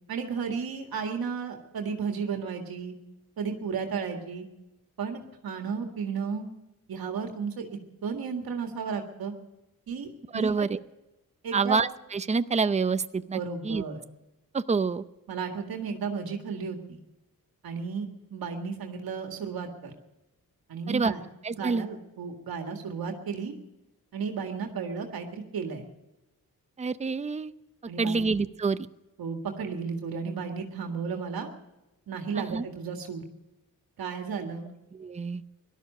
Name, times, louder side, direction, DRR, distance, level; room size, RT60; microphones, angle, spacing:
voice 1, 0.1-2.9 3.4-4.4 5.0-6.5 6.9-7.7 8.0-9.3 9.9-10.7 11.4-11.8 13.3-14.0 15.3-17.0 17.6-19.9 20.7-21.2 21.6-23.5 24.1-25.8 27.9-28.2 29.2-31.5 32.1-33.2 34.0-34.7, right 5 dB, 85° right, 3 dB, 1.9 m, -33 dB
voice 2, 10.3-10.8 11.5-13.8 14.5-15.0 20.9-21.1 21.4-21.8 26.8-27.5 28.0-28.8 32.3-32.6 34.9-35.4, right 4 dB, 20° right, 13 dB, 0.6 m, -27 dB
18.0 x 12.0 x 6.5 m, 1.0 s
cardioid pair, 90°, 35 cm